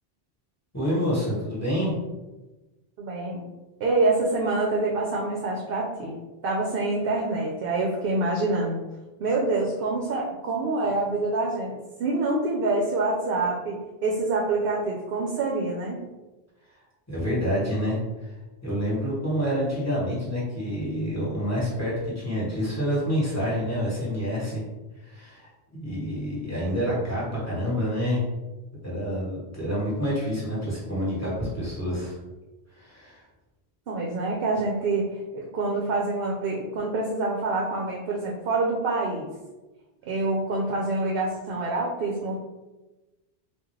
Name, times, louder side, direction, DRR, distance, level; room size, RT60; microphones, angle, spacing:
voice 1, 0.7-2.0 17.1-18.0 18.6-24.6 25.0-28.2 28.8-32.1 32.7-33.2, equal, 15° left, -7 dB, 1.2 m, -28 dB
voice 2, 3.0-3.4 3.8-6.2 6.4-8.8 9.2-16.0 26.6-26.7 33.9-39.3 40.1-42.4, right 2 dB, 65° right, -1 dB, 0.7 m, -26 dB
3.6 x 2.4 x 3.1 m, 1.1 s
omnidirectional pair, 1.1 m